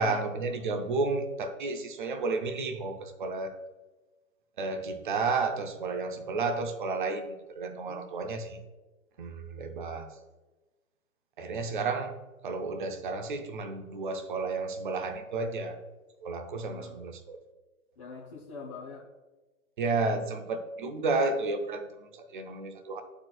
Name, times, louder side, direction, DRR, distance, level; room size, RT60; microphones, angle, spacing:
voice 1, 0.0-3.6 4.6-8.6 9.2-10.2 11.4-12.2 12.4-15.8 16.2-17.4 19.8-23.0, right 3 dB, 35° right, 8 dB, 0.6 m, -32 dB
voice 2, 7.9-8.2 16.7-17.0 18.0-19.1, left 4 dB, 25° left, -3 dB, 0.6 m, -44 dB
11.5 x 4.5 x 2.2 m, 1.2 s
figure-of-eight pair, 130°, 43 cm